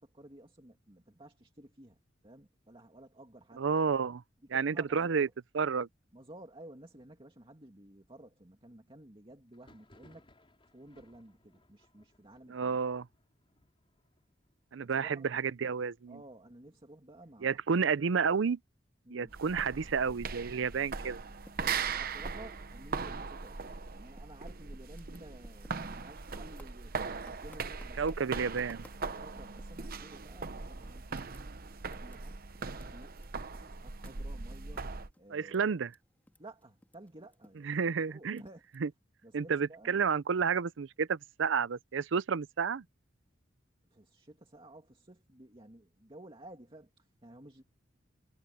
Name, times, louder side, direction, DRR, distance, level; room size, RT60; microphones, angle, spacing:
voice 1, 0.0-3.8 4.5-5.3 6.1-10.3 10.7-12.8 14.8-15.3 16.1-17.6 19.0-19.3 21.9-23.6 23.9-28.3 28.9-31.5 31.9-32.4 32.8-33.2 33.6-35.7 36.4-38.6 39.2-40.0 43.9-47.6, right 1 dB, 30° right, 2.3 m, -53 dB
voice 2, 3.6-4.2 4.5-5.3 5.5-5.9 12.5-13.1 14.7-16.2 17.4-18.6 19.1-21.2 28.0-28.9 35.3-35.9 37.7-38.4 38.8-38.9 39.3-42.8, right 6 dB, 75° right, 0.5 m, -31 dB
Thunder, 9.5-19.0 19.3-19.9 20.2-21.2 21.6-23.3, left 1 dB, 30° left, 4.8 m, -67 dB
sound 1, 19.3-35.1, right 5 dB, 50° right, 0.9 m, -40 dB
Typing, 21.1-23.8 24.1-30.0 30.4-30.5 30.8-36.0 36.2-38.8, left 1 dB, 10° left, 1.7 m, -60 dB
head